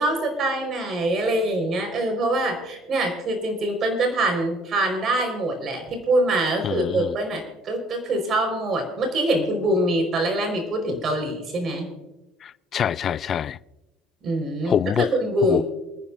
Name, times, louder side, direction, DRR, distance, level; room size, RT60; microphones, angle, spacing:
voice 1, 0.0-11.9 14.2-15.6, right 1 dB, 45° right, 4.6 m, -24 dB
voice 2, 6.6-7.2 12.4-13.6 14.6-15.1 15.5-15.6, left 9 dB, 40° left, 0.5 m, -25 dB
28.0 x 9.9 x 2.6 m
supercardioid pair, 100°, 0 cm